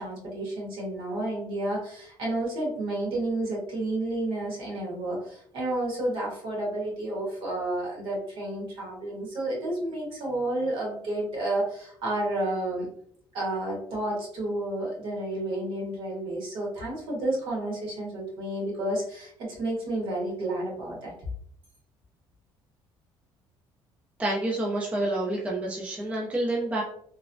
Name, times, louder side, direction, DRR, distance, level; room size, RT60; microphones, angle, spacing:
voice 1, 0.0-12.9 13.3-21.3, right 1 dB, 60° right, -3 dB, 1.4 m, -31 dB
voice 2, 24.2-26.8, right 1 dB, 15° right, -3 dB, 0.4 m, -28 dB
3.0 x 2.1 x 2.5 m, 0.66 s
cardioid pair, 145°, 10 cm